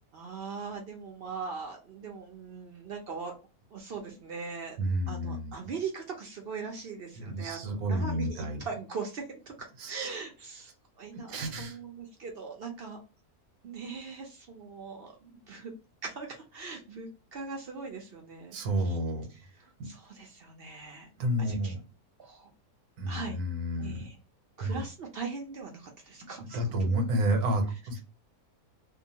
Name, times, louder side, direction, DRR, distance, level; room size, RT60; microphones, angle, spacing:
voice 1, 0.1-3.3 3.7-4.8 5.1-9.5 9.9-10.7 11.0-11.3 11.6-13.0 13.6-15.7 16.0-18.6 18.9-19.0 19.8-21.1 21.5-21.7 22.2-22.5 23.1-23.4 23.8-24.1 24.6-26.9, right 5 dB, 65° right, 1 dB, 0.6 m, -40 dB
voice 2, 4.8-5.5 7.2-8.7 9.8-10.1 11.3-11.8 18.5-19.3 19.8-19.9 21.2-21.8 23.0-24.0 24.6-24.9 26.4-28.0, right 1 dB, 80° right, 5 dB, 1.2 m, -30 dB
2.8 x 2.2 x 2.7 m, 0.32 s
omnidirectional pair, 1.6 m